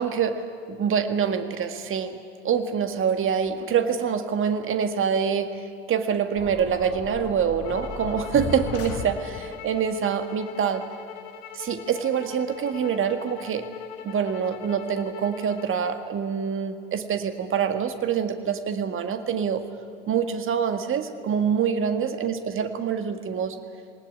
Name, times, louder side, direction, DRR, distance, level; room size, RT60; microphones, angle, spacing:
voice 1, 0.0-2.2 2.4-5.6 5.9-10.8 11.5-13.7 14.0-19.6 20.1-23.6, right 7 dB, 35° right, 8 dB, 1.9 m, -25 dB
sound 1, 6.4-9.7, left 5 dB, 40° left, 1.9 m, -36 dB
sound 2, 7.6-16.0, left 8 dB, 60° left, 2.9 m, -41 dB
20.0 x 18.5 x 9.9 m, 2.4 s
figure-of-eight pair, 70°, 36 cm